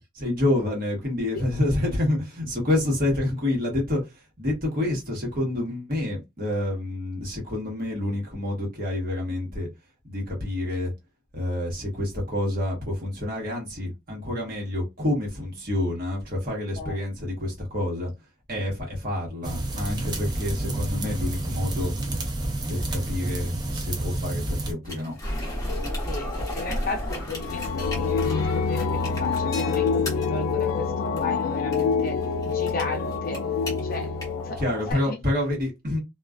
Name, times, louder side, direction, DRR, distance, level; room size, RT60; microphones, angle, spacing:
voice 1, 0.2-9.7 10.0-10.9 11.3-18.1 18.5-21.9 22.7-25.1 34.6-36.0, left 1 dB, 45° right, 1.1 m, -28 dB
sound 1, 19.4-24.7, right 1 dB, 20° right, 0.4 m, -29 dB
sound 2, 24.8-34.9, left 1 dB, 15° left, 0.9 m, -34 dB
voice 2, 26.1-32.2 32.5-33.4 33.8-34.1 34.4-34.6 34.9-35.2, left 3 dB, 45° left, 0.6 m, -35 dB
sound 3, 27.4-34.9, left 5 dB, 90° left, 0.3 m, -26 dB
2.3 x 2.2 x 2.4 m
head